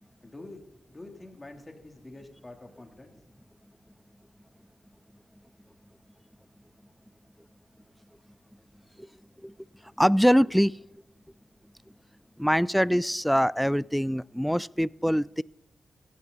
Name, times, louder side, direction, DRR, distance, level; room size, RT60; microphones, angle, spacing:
voice 1, 0.2-0.6 0.9-3.1, left 2 dB, 25° left, 3 dB, 3.3 m, -46 dB
voice 2, 10.0-10.8 12.4-15.4, equal, ahead, 21 dB, 0.4 m, -23 dB
16.5 x 16.0 x 4.1 m, 0.82 s
cardioid pair, 55°, 0 cm